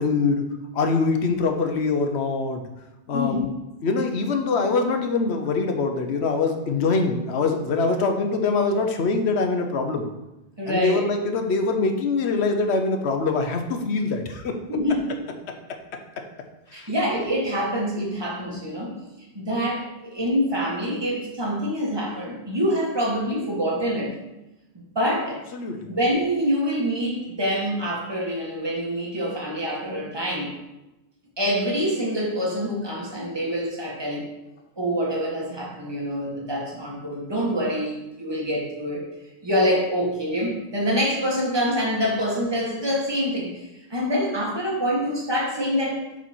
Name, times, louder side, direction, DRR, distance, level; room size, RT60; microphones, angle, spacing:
voice 1, 0.0-2.6 3.1-3.6 3.8-10.0 10.7-14.5 16.7-16.9 25.5-25.9, left 4 dB, 90° left, 5 dB, 1.1 m, -24 dB
voice 2, 3.1-3.5 10.6-11.0 14.7-15.1 16.7-18.9 19.2-24.1 25.0-25.4 25.9-30.5 31.4-34.3 34.8-39.0 39.4-43.5 43.9-46.2, equal, 25° right, -4 dB, 1.7 m, -25 dB
7.3 x 4.2 x 4.4 m, 0.97 s
omnidirectional pair, 1.1 m